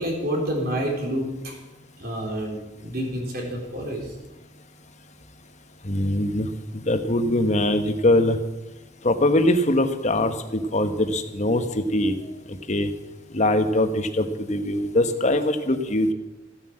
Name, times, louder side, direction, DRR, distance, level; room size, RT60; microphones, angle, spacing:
voice 1, 0.0-1.6 2.0-4.1 12.2-12.3, equal, 55° right, 0 dB, 4.0 m, -28 dB
voice 2, 5.8-6.5 6.8-8.4 9.0-12.1 12.5-12.9 13.3-16.1, left 1 dB, 40° left, 8 dB, 1.2 m, -22 dB
15.5 x 9.5 x 7.6 m, 1.1 s
head